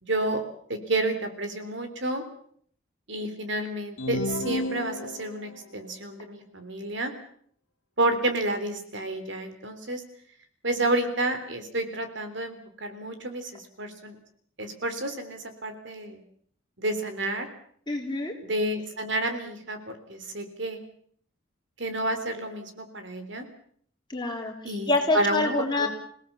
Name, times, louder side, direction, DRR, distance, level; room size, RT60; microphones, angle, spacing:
voice 1, 0.0-0.4 0.7-2.2 3.1-7.1 8.0-10.0 10.6-14.2 14.6-16.2 16.8-17.5 18.4-20.8 21.8-23.5 24.6-25.9, right 2 dB, 60° right, 8 dB, 3.5 m, -30 dB
sound 1, 4.0-5.6, left 1 dB, 75° left, 1.4 m, -32 dB
voice 2, 17.9-18.4 24.1-25.9, left 2 dB, 20° left, 1 dB, 4.0 m, -26 dB
27.5 x 18.0 x 7.3 m, 0.62 s
head